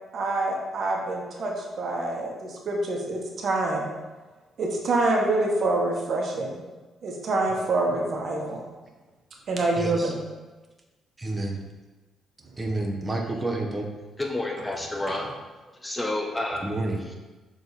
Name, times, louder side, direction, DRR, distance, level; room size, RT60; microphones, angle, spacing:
voice 1, 0.1-3.9 4.6-6.6 7.0-8.6 9.5-10.1, right 2 dB, 55° right, 0 dB, 1.3 m, -26 dB
voice 2, 9.8-10.1 11.2-11.6 12.6-13.9 16.6-17.0, right 2 dB, 20° right, 1 dB, 1.0 m, -29 dB
voice 3, 14.2-15.3 15.7-16.6, left 2 dB, 15° left, 1 dB, 0.9 m, -29 dB
6.9 x 3.8 x 4.1 m, 1.2 s
cardioid pair, 90°, 0 cm